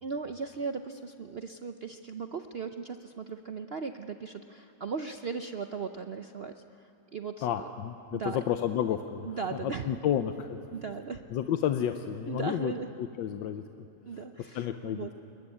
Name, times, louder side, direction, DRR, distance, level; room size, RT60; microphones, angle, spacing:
voice 1, 0.0-7.7 8.1-8.4 9.2-9.9 10.7-11.2 12.3-12.9 14.1-15.1, right 5 dB, 65° right, 7 dB, 0.6 m, -37 dB
voice 2, 7.4-10.6 11.3-12.7 13.2-13.6 14.5-15.1, left 10 dB, 85° left, 8 dB, 1.5 m, -31 dB
21.5 x 20.5 x 9.9 m, 2.7 s
omnidirectional pair, 1.9 m